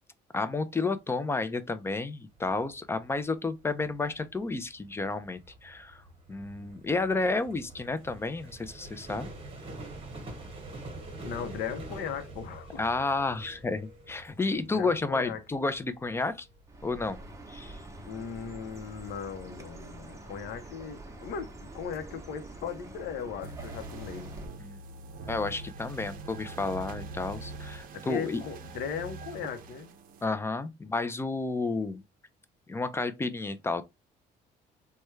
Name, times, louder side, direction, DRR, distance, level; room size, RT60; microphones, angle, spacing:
voice 1, 0.3-6.0 6.3-9.3 12.8-16.5 16.8-17.2 17.5-17.8 24.6-24.8 25.3-28.4 30.2-32.0 32.7-33.8, left 3 dB, 15° left, 0.4 m, -31 dB
sound 1, 2.3-18.9, right 2 dB, 35° right, 1.1 m, -47 dB
voice 2, 11.2-12.9 14.6-15.4 18.1-24.3 27.9-29.9, left 7 dB, 80° left, 0.7 m, -38 dB
Chirp tweet, 16.7-24.5, right 2 dB, 20° right, 0.7 m, -46 dB
sound 2, 23.4-30.3, right 3 dB, 55° right, 0.5 m, -43 dB
3.3 x 2.2 x 3.1 m
cardioid pair, 110°, 17 cm